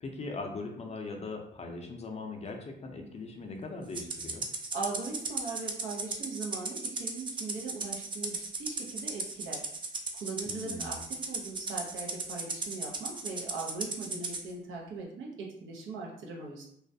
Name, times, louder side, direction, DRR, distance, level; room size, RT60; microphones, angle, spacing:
voice 1, 0.0-4.4 10.5-11.0, left 3 dB, 35° left, 2 dB, 0.5 m, -40 dB
Rattle (instrument), 3.9-14.4, right 3 dB, 25° right, 0.3 m, -36 dB
voice 2, 4.7-9.6 10.1-16.7, right 4 dB, 80° right, -1 dB, 0.6 m, -40 dB
2.3 x 2.1 x 2.6 m, 0.70 s
cardioid pair, 90°, 20 cm